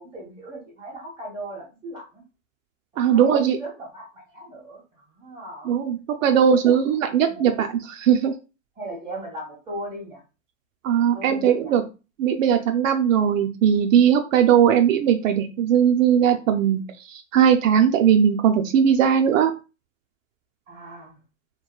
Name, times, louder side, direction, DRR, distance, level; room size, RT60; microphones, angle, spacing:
voice 1, 0.0-2.2 2.9-5.7 6.4-6.6 7.1-7.6 8.8-10.2 11.1-11.7 20.7-21.2, right 1 dB, 10° right, -4 dB, 1.3 m, -38 dB
voice 2, 3.0-3.6 5.7-8.3 10.8-11.8 12.2-19.5, right 8 dB, 70° right, 5 dB, 0.5 m, -19 dB
2.8 x 2.2 x 2.3 m, 0.31 s
hypercardioid pair, 135°, 40 cm